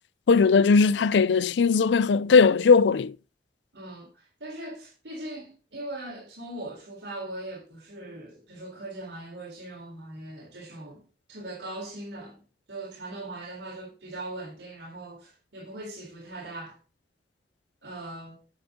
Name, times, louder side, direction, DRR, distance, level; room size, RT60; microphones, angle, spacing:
voice 1, 0.3-3.1, left 5 dB, 85° left, 0.4 m, -19 dB
voice 2, 3.7-12.4 12.7-16.8 17.8-18.4, right 1 dB, 80° right, 3.9 m, -40 dB
9.5 x 9.0 x 3.7 m
head